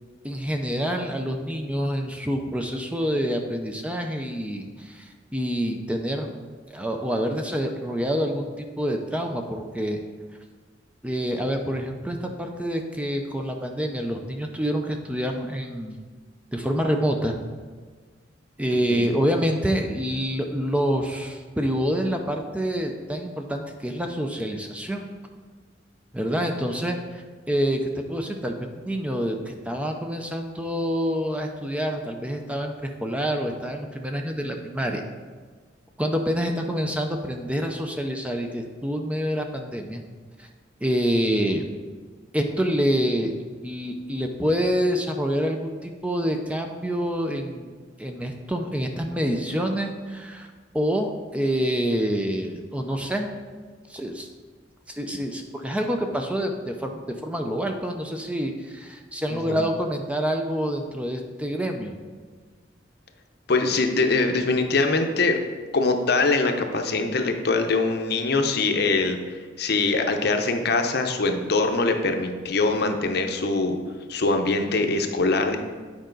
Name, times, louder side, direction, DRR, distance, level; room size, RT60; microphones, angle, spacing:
voice 1, 0.2-6.3 6.7-10.0 11.0-16.0 16.5-17.3 18.6-25.1 26.1-35.0 36.0-40.0 40.4-40.5 40.8-41.7 42.3-43.3 43.6-47.7 48.0-50.5 50.7-53.3 53.9-54.3 54.9-61.9, equal, 5° right, 3 dB, 0.5 m, -27 dB
voice 2, 63.5-65.4 65.7-69.2 69.6-73.8 74.1-75.6, left 3 dB, 55° left, 5 dB, 0.7 m, -23 dB
9.0 x 5.0 x 3.8 m, 1.5 s
head